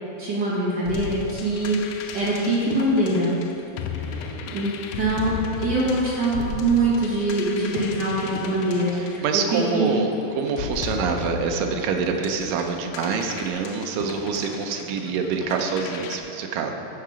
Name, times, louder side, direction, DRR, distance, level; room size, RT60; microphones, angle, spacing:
voice 1, 0.2-3.3 3.9-5.3 5.6-9.9, right 2 dB, 45° right, -7 dB, 1.5 m, -24 dB
sound 1, 0.9-9.9 10.5-16.2, left 6 dB, 90° left, 1.7 m, -35 dB
voice 2, 4.1-4.5 8.9-10.1 10.4-16.7, right 5 dB, 80° right, 3 dB, 2.2 m, -26 dB
13.0 x 4.8 x 5.0 m, 3.0 s
omnidirectional pair, 4.1 m